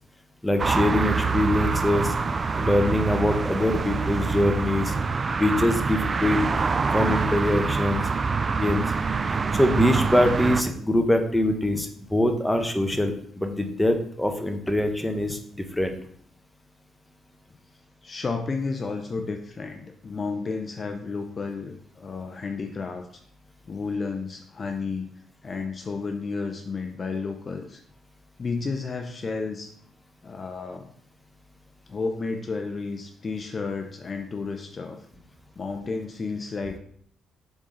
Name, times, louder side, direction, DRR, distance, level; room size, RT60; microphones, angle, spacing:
voice 1, 0.4-2.1 2.5-4.9 5.4-6.4 6.9-8.0 8.6-8.8 9.5-15.9, left 1 dB, 5° left, 5 dB, 0.9 m, -23 dB
sound 1, 0.6-10.6, right 4 dB, 35° right, 0.4 m, -25 dB
voice 2, 18.0-23.2 23.7-25.1 25.4-27.8 28.4-29.7 30.2-30.9 31.9-35.1 35.6-36.8, left 4 dB, 35° left, 4 dB, 0.6 m, -32 dB
7.2 x 3.9 x 3.8 m, 0.64 s
cardioid pair, 90°, 0 cm